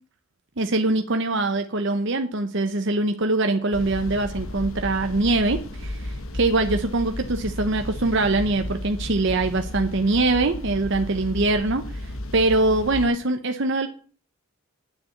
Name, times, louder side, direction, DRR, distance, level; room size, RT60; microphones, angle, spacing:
voice 1, 0.6-13.9, right 2 dB, 55° right, 7 dB, 0.8 m, -23 dB
sound 1, 3.7-13.1, left 1 dB, 70° left, 1.3 m, -33 dB
9.5 x 6.8 x 8.0 m, 0.42 s
head